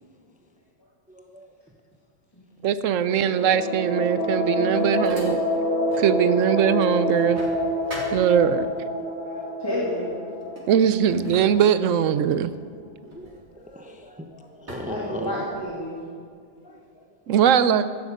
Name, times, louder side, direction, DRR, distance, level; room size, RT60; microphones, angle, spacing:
voice 1, 1.1-1.5 9.0-9.5 13.1-15.4 16.6-17.1 17.5-17.6, equal, 5° right, 4 dB, 0.8 m, -39 dB
voice 2, 2.6-5.4 6.0-7.4 8.1-8.7 10.7-12.5 17.3-17.9, right 8 dB, 90° right, 13 dB, 1.0 m, -21 dB
sound 1, 3.1-11.7, equal, 50° left, 2.3 m, -27 dB
sound 2, 4.1-6.2 6.5-8.8 9.7-10.0 10.3-14.2 14.7-15.8, equal, 65° right, 3.1 m, -43 dB
voice 3, 9.6-10.1 14.6-16.0 16.7-16.8, left 1 dB, 20° left, -6 dB, 2.4 m, -30 dB
16.5 x 12.0 x 5.0 m, 2.1 s
omnidirectional pair, 1.3 m